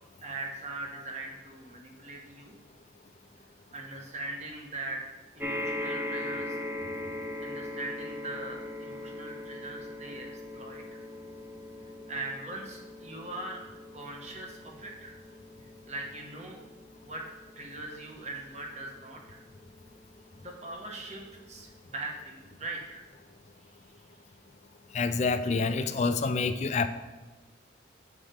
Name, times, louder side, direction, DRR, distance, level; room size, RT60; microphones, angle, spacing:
voice 1, 0.2-2.5 3.7-5.0 5.4-6.6 7.4-10.8 12.1-13.6 13.9-15.1 15.9-16.6 17.0-17.2 17.6-19.4 20.4-21.2 21.5-23.0, right 2 dB, 35° right, 1 dB, 1.0 m, -40 dB
sound 1, 5.4-20.0 20.7-20.8 21.1-21.2, left 2 dB, 10° right, 0.6 m, -40 dB
voice 2, 24.9-26.9, left 4 dB, 35° left, 10 dB, 0.3 m, -27 dB
7.2 x 4.4 x 5.0 m, 1.3 s
head